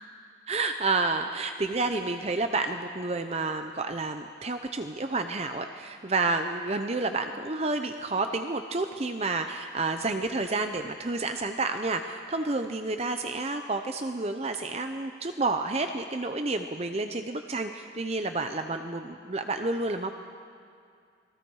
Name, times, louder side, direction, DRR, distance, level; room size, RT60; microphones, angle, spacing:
voice 1, 0.5-20.1, right 3 dB, 35° right, 6 dB, 0.7 m, -30 dB
29.5 x 22.0 x 4.8 m, 2.3 s
head